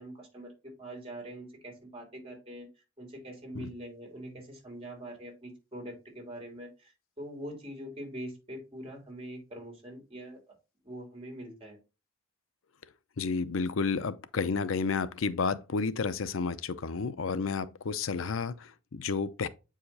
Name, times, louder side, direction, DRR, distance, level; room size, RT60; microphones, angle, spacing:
voice 1, 0.0-2.7 3.0-10.4 10.8-11.8, right 1 dB, 30° right, 3.2 m, -43 dB
voice 2, 13.2-19.5, left 5 dB, 80° left, 0.6 m, -31 dB
8.6 x 5.0 x 2.7 m
head